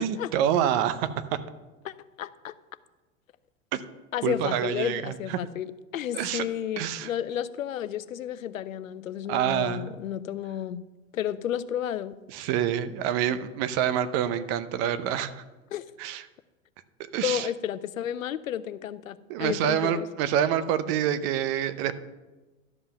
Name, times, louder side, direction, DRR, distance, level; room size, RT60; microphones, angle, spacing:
voice 1, 0.0-1.4 3.7-3.8 4.2-5.4 6.1-6.4 6.8-7.1 9.3-9.9 12.3-15.4 16.0-16.2 17.1-17.5 19.3-21.9, right 10 dB, 50° right, 13 dB, 0.8 m, -27 dB
voice 2, 1.8-2.5 4.1-5.7 5.9-10.8 11.1-12.1 15.7-15.8 17.2-20.1, left 10 dB, 90° left, 15 dB, 0.6 m, -32 dB
12.5 x 5.5 x 5.8 m, 1.2 s
hypercardioid pair, 100°, 39 cm